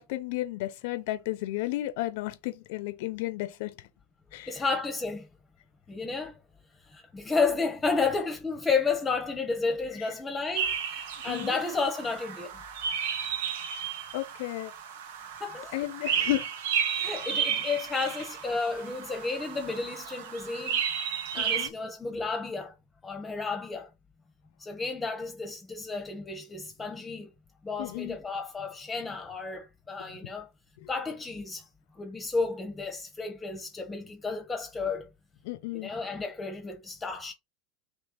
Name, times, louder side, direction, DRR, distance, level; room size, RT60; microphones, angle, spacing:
voice 1, 0.0-3.7 4.3-4.6 11.3-11.6 14.1-14.7 15.7-16.5 21.4-21.7 27.8-28.2 30.8-30.9 35.4-35.9, left 16 dB, 65° left, 0.6 m, -33 dB
voice 2, 4.5-5.3 5.9-6.4 6.8-12.5 15.4-15.8 16.9-20.8 21.3-22.7 23.0-23.9 24.6-27.3 27.6-30.5 30.9-31.7 31.9-35.1 35.7-37.3, left 4 dB, 20° left, 0.9 m, -32 dB
sound 1, 10.6-21.7, right 8 dB, 70° right, 0.8 m, -33 dB
3.4 x 3.1 x 4.3 m
hypercardioid pair, 80°, 0 cm